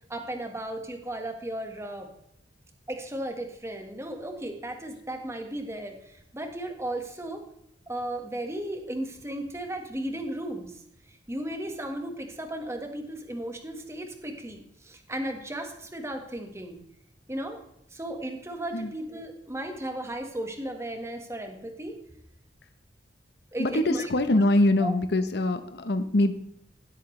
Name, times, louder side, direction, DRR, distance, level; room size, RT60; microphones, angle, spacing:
voice 1, 0.1-2.1 2.9-7.4 7.9-10.8 11.3-16.8 17.3-17.6 17.9-21.9 23.5-24.1 24.8-24.9, right 1 dB, 15° right, 4 dB, 1.5 m, -35 dB
voice 2, 23.6-26.3, left 1 dB, 65° left, 10 dB, 0.9 m, -23 dB
17.0 x 8.0 x 3.2 m, 0.77 s
head